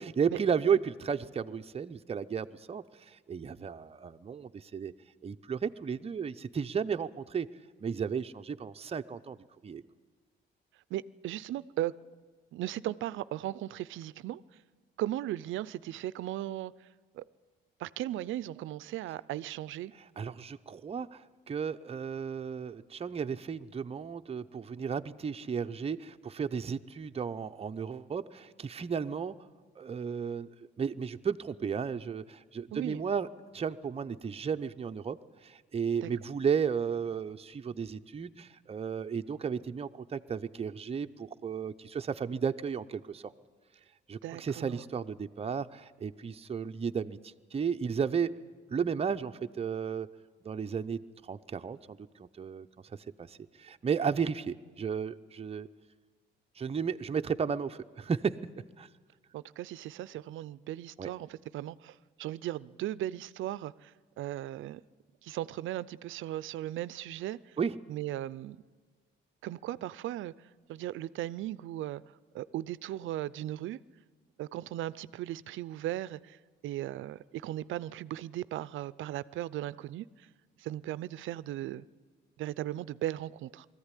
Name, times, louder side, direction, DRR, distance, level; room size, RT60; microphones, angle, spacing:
voice 1, 0.0-4.9 5.2-7.5 7.8-9.4 9.6-9.8 20.2-29.3 29.8-30.5 30.8-33.3 33.5-35.2 35.4-43.3 44.1-47.2 47.5-48.3 48.7-50.1 50.4-52.7 53.2-55.7 56.6-58.3 58.8-58.9 61.0-61.1 67.6-67.8, right 6 dB, 30° right, 0.7 m, -34 dB
voice 2, 10.9-11.9 12.5-14.4 15.0-16.7 17.1-17.2 17.8-19.9 32.7-33.0 36.0-36.1 44.2-44.8 59.3-64.8 65.2-67.6 67.9-68.6 69.4-70.3 70.7-72.0 72.3-73.8 74.4-76.4 76.6-80.3 80.6-81.8 82.4-83.7, right 14 dB, 80° right, 0.5 m, -37 dB
20.0 x 14.5 x 9.9 m
cardioid pair, 90°, 20 cm